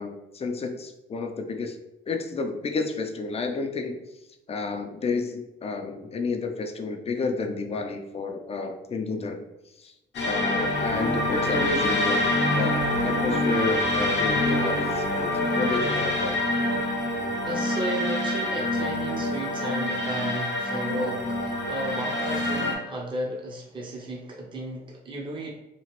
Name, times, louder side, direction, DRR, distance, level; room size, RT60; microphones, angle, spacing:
voice 1, 0.0-1.8 2.1-4.0 4.5-9.5 9.8-9.9 10.2-12.3 12.5-16.4, left 4 dB, 30° left, 5 dB, 0.4 m, -30 dB
sound 1, 10.1-22.7, left 1 dB, 60° left, 0.8 m, -26 dB
voice 2, 17.4-25.5, right 1 dB, 25° right, -2 dB, 0.6 m, -34 dB
2.9 x 2.5 x 2.9 m, 0.94 s
cardioid pair, 90°, 20 cm